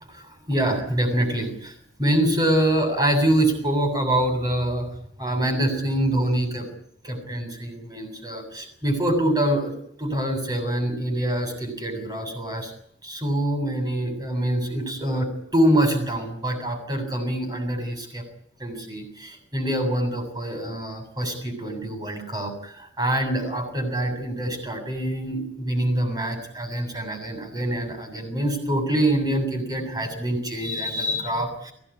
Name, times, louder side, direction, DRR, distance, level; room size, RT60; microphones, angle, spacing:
voice 1, 0.1-1.7 2.0-4.9 5.2-6.7 7.0-9.7 10.0-12.7 13.0-18.2 18.6-31.7, right 1 dB, 20° right, 5 dB, 7.4 m, -25 dB
23.0 x 18.5 x 9.9 m, 0.68 s
head